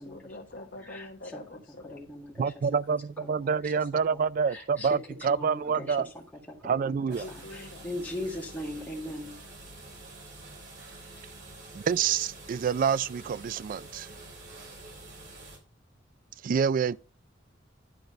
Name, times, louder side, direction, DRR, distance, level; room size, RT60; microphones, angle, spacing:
voice 1, 0.0-2.0 7.2-7.9 8.8-8.9, left 2 dB, 65° left, 1.1 m, -45 dB
voice 2, 0.8-1.4 1.8-2.3 3.2-3.7 4.5-4.9 5.3-6.0 6.6-9.4, left 1 dB, 10° left, 1.9 m, -39 dB
voice 3, 2.4-6.1 6.6-7.3 11.7-14.1 16.4-17.0, right 6 dB, 45° right, 0.3 m, -27 dB
sound 1, 7.1-15.6, right 2 dB, 65° right, 2.9 m, -47 dB
11.0 x 3.9 x 5.3 m
head